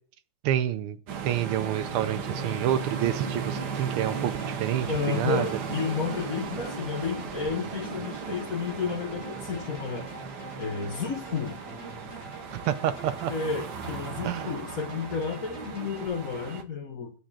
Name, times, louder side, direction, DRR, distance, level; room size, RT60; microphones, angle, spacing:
voice 1, 0.4-1.0 1.2-4.9 5.1-5.5 12.5-13.3 14.2-14.5, right 11 dB, 80° right, 1.5 m, -28 dB
sound 1, 1.1-16.6, right 6 dB, 55° right, 1.4 m, -36 dB
sound 2, 2.4-16.1, left 1 dB, 15° left, 1.2 m, -45 dB
voice 2, 4.9-10.1 10.6-11.6 13.3-17.1, left 5 dB, 45° left, 1.5 m, -31 dB
8.8 x 5.0 x 7.2 m
omnidirectional pair, 2.4 m